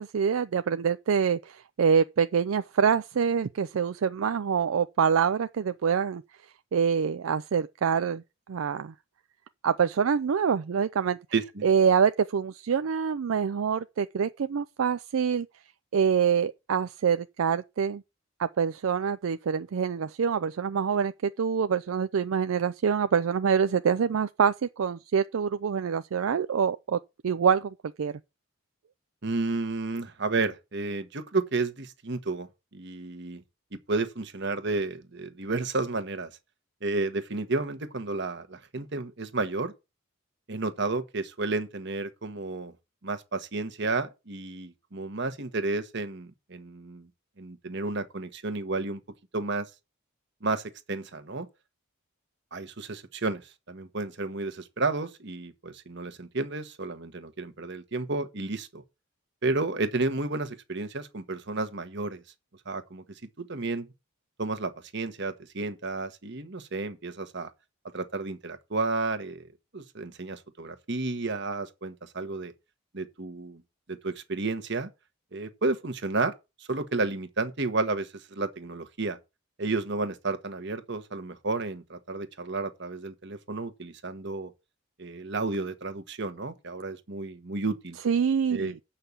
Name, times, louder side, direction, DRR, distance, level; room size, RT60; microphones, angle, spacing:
voice 1, 0.0-6.2 6.7-8.2 8.5-8.9 9.6-11.2 11.6-15.5 15.9-18.0 18.4-28.2 88.0-88.7, right 6 dB, 75° right, 0.4 m, -25 dB
voice 2, 11.3-11.7 29.2-33.4 33.7-36.3 36.8-39.7 40.5-42.7 43.0-47.1 47.4-49.0 49.3-49.7 50.4-51.5 52.5-58.8 59.4-62.2 62.6-63.9 64.4-67.5 67.9-69.5 69.7-72.5 72.9-73.6 73.9-74.9 75.3-76.3 76.6-79.2 79.6-84.5 85.0-88.0 88.5-88.7, right 3 dB, 55° right, 1.3 m, -32 dB
8.1 x 5.7 x 7.2 m
head